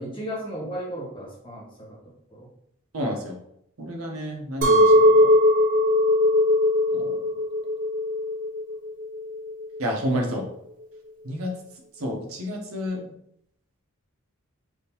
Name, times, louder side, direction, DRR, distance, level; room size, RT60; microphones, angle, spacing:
voice 1, 0.0-1.9 2.3-2.5, equal, 25° left, -5 dB, 1.2 m, -35 dB
voice 2, 2.9-3.4 3.8-5.3 6.9-7.2 9.8-10.4 11.2-11.5 12.0-13.1, equal, 90° right, 1 dB, 0.8 m, -30 dB
Chink clink, 4.6-9.8, left 1 dB, 40° right, 0.6 m, -20 dB
3.6 x 2.6 x 2.8 m, 0.74 s
head